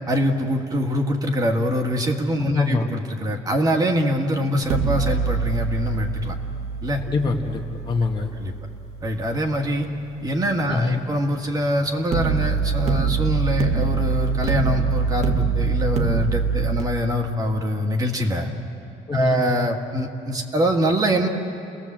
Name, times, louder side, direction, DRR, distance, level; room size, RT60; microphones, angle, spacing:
voice 1, 0.1-6.4 6.8-7.0 8.3-8.5 9.0-9.9 10.2-18.5 19.1-21.3, equal, 30° right, 3 dB, 1.9 m, -24 dB
voice 2, 2.4-2.9 7.1-8.3 10.7-11.0 19.1-19.4, left 3 dB, 35° left, 2 dB, 1.7 m, -24 dB
sound 1, 4.6-9.7 12.1-16.8, right 5 dB, 55° right, 1.9 m, -24 dB
29.5 x 19.0 x 7.6 m, 2.7 s
cardioid pair, 145°, 13 cm